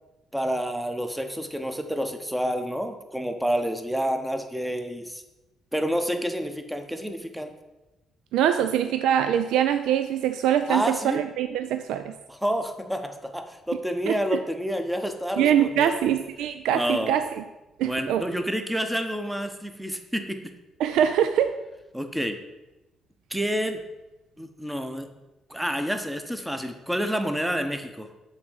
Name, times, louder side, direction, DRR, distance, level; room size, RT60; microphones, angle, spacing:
voice 1, 0.3-5.2 5.7-7.5 10.7-11.2 12.3-16.1 16.7-17.2 17.8-20.5 21.9-22.4 23.3-23.8 24.4-25.1 25.5-28.1, equal, 5° right, 6 dB, 0.9 m, -29 dB
voice 2, 8.3-12.1 14.1-14.4 15.4-17.3 17.8-18.2 20.8-21.5, right 9 dB, 90° right, 9 dB, 0.3 m, -23 dB
7.1 x 4.0 x 6.4 m, 1.0 s
cardioid pair, 90°, 0 cm